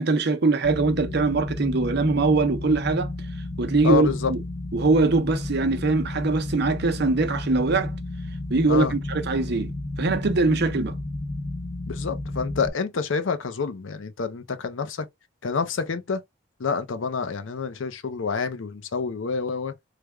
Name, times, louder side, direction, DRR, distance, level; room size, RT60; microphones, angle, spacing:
voice 1, 0.0-3.1 3.6-4.4 4.7-7.9 8.5-10.9, right 3 dB, 55° right, 0.6 m, -22 dB
sound 1, 0.6-12.7, left 2 dB, 20° left, 0.3 m, -32 dB
voice 2, 3.8-4.3 8.7-8.9 11.9-15.1 15.4-16.2 16.6-19.7, left 5 dB, 80° left, 0.6 m, -27 dB
3.3 x 2.1 x 3.5 m
head